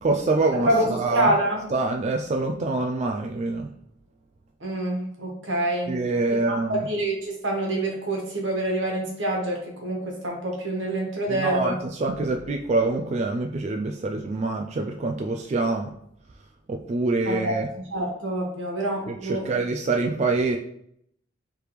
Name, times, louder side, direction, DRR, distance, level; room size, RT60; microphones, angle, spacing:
voice 1, 0.0-1.4 1.7-3.7 5.9-6.9 11.3-15.9 16.7-17.7 19.1-20.6, right 3 dB, 35° right, 2 dB, 0.3 m, -25 dB
voice 2, 0.6-1.6 4.6-5.9 6.5-11.8 17.3-17.6 17.9-19.5, right 1 dB, 80° right, -1 dB, 1.3 m, -26 dB
4.8 x 3.4 x 3.1 m, 0.71 s
head